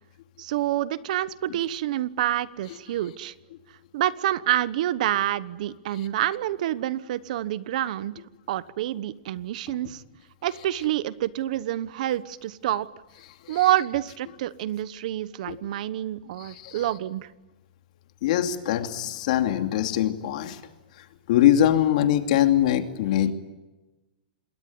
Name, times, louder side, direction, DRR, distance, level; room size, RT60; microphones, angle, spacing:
voice 1, 0.4-3.3 3.9-8.2 8.5-10.0 10.4-12.9 13.5-17.3, right 13 dB, 50° right, 17 dB, 1.1 m, -27 dB
voice 2, 16.4-16.8 18.2-20.6 21.3-23.3, left 11 dB, 50° left, 7 dB, 2.6 m, -22 dB
27.5 x 21.5 x 9.6 m, 1.1 s
hypercardioid pair, 165°, 5 cm